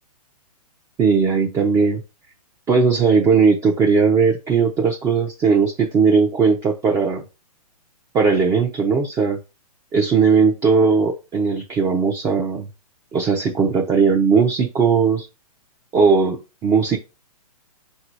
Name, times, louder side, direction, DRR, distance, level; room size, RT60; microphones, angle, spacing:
voice 1, 1.0-2.0 2.7-7.2 8.1-9.4 9.9-12.7 13.1-15.3 15.9-17.0, right 5 dB, 15° right, 0 dB, 0.5 m, -18 dB
3.8 x 2.7 x 4.5 m, 0.29 s
hypercardioid pair, 130°, 20 cm